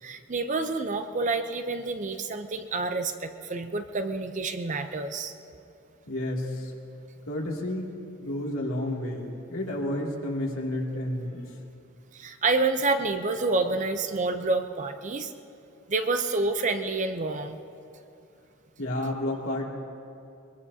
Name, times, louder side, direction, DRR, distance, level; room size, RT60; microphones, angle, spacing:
voice 1, 0.0-5.3 12.1-15.3 15.9-17.6, right 3 dB, 35° right, 7 dB, 0.6 m, -28 dB
voice 2, 6.1-6.7 7.3-7.9 8.2-11.5 18.8-19.6, left 1 dB, 75° left, -2 dB, 2.6 m, -31 dB
23.0 x 22.5 x 2.8 m, 2.6 s
head